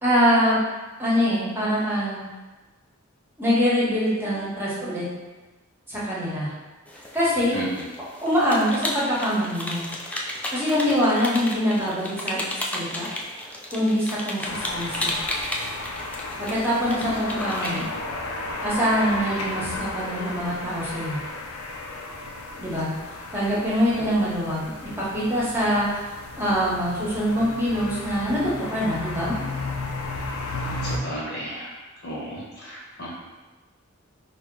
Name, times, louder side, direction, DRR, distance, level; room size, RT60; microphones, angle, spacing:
voice 1, 0.0-0.6 1.0-2.2 3.4-5.1 5.9-6.5 7.1-7.6 8.2-9.8 10.3-13.1 13.7-15.2 16.4-17.8 18.6-21.2 22.6-22.9 23.3-26.0 26.4-29.4, equal, 10° right, -8 dB, 1.1 m, -24 dB
sound 1, 6.9-18.0, left 1 dB, 5° left, 0.3 m, -33 dB
voice 2, 7.5-7.8 17.0-17.9 23.9-24.1 30.8-31.7 32.0-33.1, equal, 50° left, -6 dB, 1.3 m, -34 dB
sound 2, 14.4-31.0, left 2 dB, 75° left, 0.5 m, -34 dB
4.3 x 2.1 x 3.7 m, 1.2 s
head